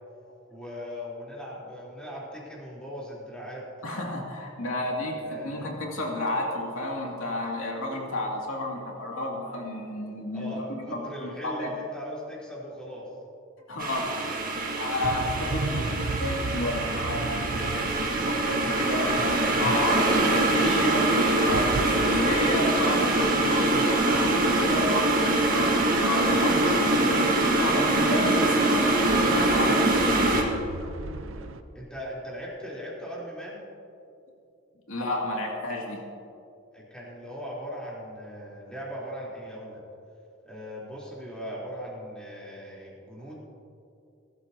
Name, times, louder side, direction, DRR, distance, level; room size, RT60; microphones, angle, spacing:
voice 1, 0.5-3.7 4.8-5.7 10.3-13.1 21.1-21.2 26.6-27.4 31.7-33.6 36.7-39.8 40.4-43.4, equal, 5° left, -7 dB, 3.7 m, -39 dB
voice 2, 3.8-10.7 10.9-11.7 13.7-14.2 14.7-17.6 18.3-20.0 20.3-26.8 27.1-27.3 27.6-30.5 31.2-31.3 34.9-36.0, left 1 dB, 85° left, -1 dB, 2.5 m, -31 dB
sound 1, 13.8-30.4, right 2 dB, 45° right, 1.8 m, -24 dB
sound 2, 15.0-31.6, right 3 dB, 75° right, 0.7 m, -37 dB
21.0 x 12.5 x 2.9 m, 2.7 s
head